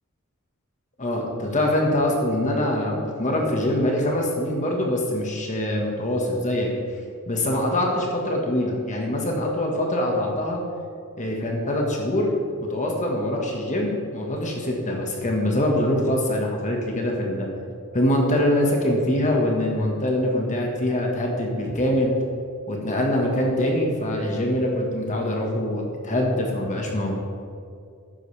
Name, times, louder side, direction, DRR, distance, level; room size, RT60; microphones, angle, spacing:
voice 1, 1.0-6.7 7.3-10.6 11.2-12.3 12.6-17.5 17.9-22.1 22.7-27.1, left 1 dB, 35° left, 0 dB, 1.5 m, -24 dB
12.5 x 9.4 x 3.3 m, 2.4 s
head